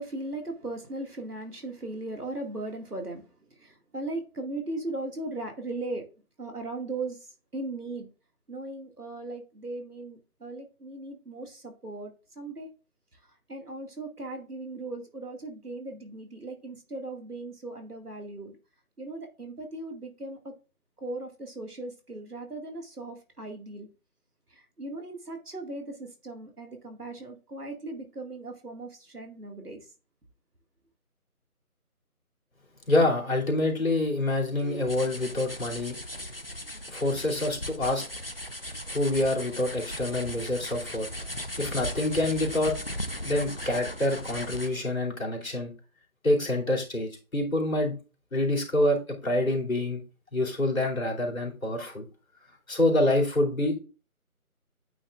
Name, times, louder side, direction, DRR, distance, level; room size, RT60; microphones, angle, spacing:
voice 1, 0.0-3.2 3.6-6.1 6.4-7.2 7.5-8.1 8.5-12.7 13.5-18.6 19.0-20.5 21.0-23.9 24.5-29.8, right 2 dB, 85° right, 2.3 m, -38 dB
voice 2, 32.9-36.0 36.9-38.0 38.9-41.1 41.6-42.7 43.2-45.7 46.2-48.0 48.3-50.0 50.3-52.0 52.7-53.7, left 1 dB, 65° left, 3.1 m, -26 dB
sound 1, 34.5-44.9, left 1 dB, 40° left, 0.5 m, -37 dB
8.6 x 6.6 x 2.5 m
figure-of-eight pair, 165°, 45 cm